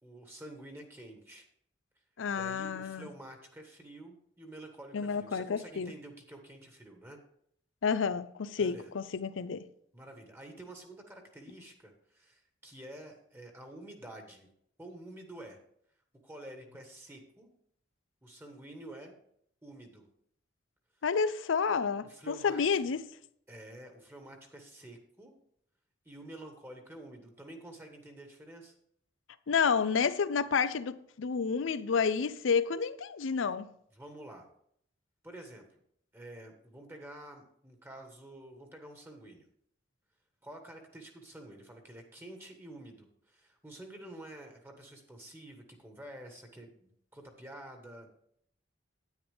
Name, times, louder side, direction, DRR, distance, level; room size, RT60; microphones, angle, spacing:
voice 1, 0.0-1.5 2.3-7.2 8.6-8.9 9.9-14.5 14.8-15.6 16.2-17.5 18.2-19.2 19.6-20.1 22.0-22.8 23.5-25.3 26.0-28.7 33.9-34.5 35.2-35.8 36.1-39.5 40.4-48.1, right 1 dB, 15° right, 1.4 m, -49 dB
voice 2, 2.2-3.1 4.9-5.9 7.8-9.7 21.0-23.0 29.5-33.7, left 5 dB, 85° left, 0.5 m, -30 dB
9.8 x 9.5 x 3.5 m
head